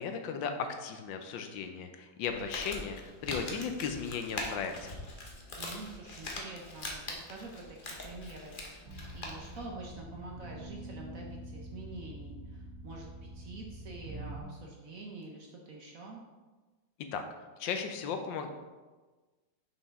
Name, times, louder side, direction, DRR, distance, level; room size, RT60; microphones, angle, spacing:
voice 1, 0.0-4.9 17.1-17.2 17.6-18.5, left 6 dB, 75° left, 6 dB, 1.3 m, -36 dB
Crumpling crinkling, 2.2-9.6, left 2 dB, 40° left, 0.7 m, -42 dB
voice 2, 5.6-8.6 9.1-16.2, right 2 dB, 60° right, -1 dB, 1.0 m, -46 dB
sound 1, 8.9-14.4, right 1 dB, 85° right, 1.8 m, -45 dB
6.2 x 5.5 x 3.6 m, 1.3 s
omnidirectional pair, 2.1 m